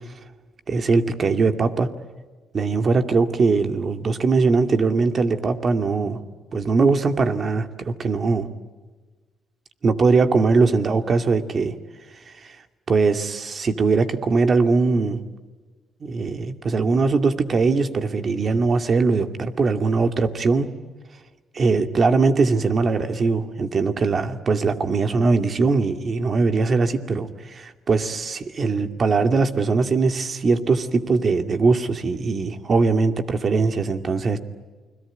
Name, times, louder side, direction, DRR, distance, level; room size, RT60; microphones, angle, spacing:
voice 1, 0.7-1.9 2.5-6.2 6.5-8.5 9.8-11.8 12.4-12.6 12.9-15.2 16.0-20.7 21.5-34.4, right 4 dB, 45° right, 8 dB, 2.4 m, -21 dB
29.0 x 22.0 x 9.2 m, 1.3 s
cardioid pair, 90°, 0 cm